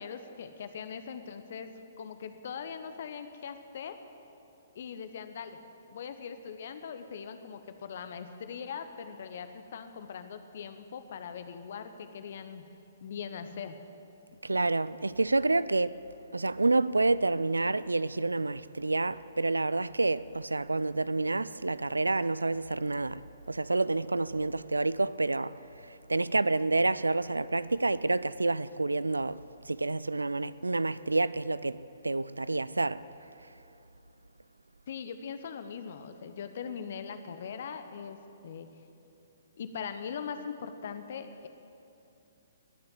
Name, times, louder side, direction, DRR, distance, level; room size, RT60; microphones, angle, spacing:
voice 1, 0.0-1.7 2.0-4.0 4.7-5.6 5.9-12.6 13.0-13.8 34.9-38.7 39.6-41.5, left 6 dB, 55° left, 1.0 m, -41 dB
voice 2, 14.4-16.0 16.3-33.1, right 2 dB, 85° right, 0.3 m, -29 dB
20.5 x 6.8 x 7.4 m
figure-of-eight pair, 125°, 0 cm